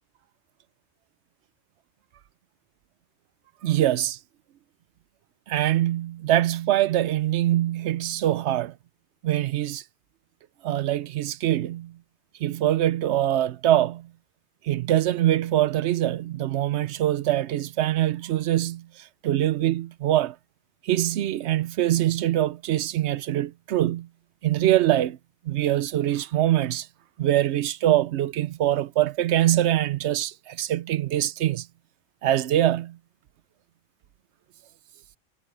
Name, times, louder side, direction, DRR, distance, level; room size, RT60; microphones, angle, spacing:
voice 1, 3.6-4.2 5.5-8.7 9.2-9.8 10.6-11.9 12.4-14.1 14.6-20.4 20.8-24.1 24.4-25.2 25.4-26.9 27.2-31.7 32.2-33.0, right 13 dB, 75° right, 0.9 m, -23 dB
omnidirectional pair, 1.2 m